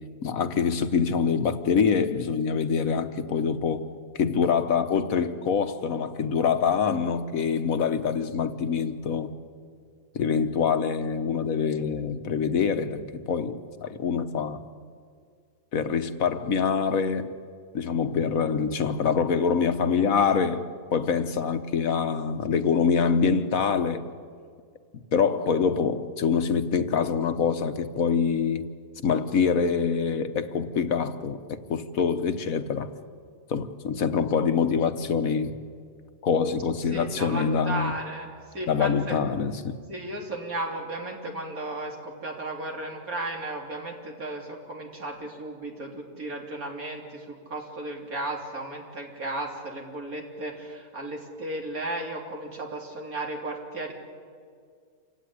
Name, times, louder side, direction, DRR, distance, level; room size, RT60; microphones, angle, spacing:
voice 1, 0.2-3.9 4.1-9.3 10.1-14.6 15.7-17.4 17.7-20.6 20.9-24.0 25.1-28.7 29.0-32.9 33.5-35.6 36.2-37.9 38.7-39.8, left 6 dB, 75° left, 1.5 m, -25 dB
voice 2, 36.9-39.2 39.9-53.9, right 2 dB, 75° right, 3.8 m, -35 dB
27.5 x 16.5 x 10.0 m
omnidirectional pair, 1.5 m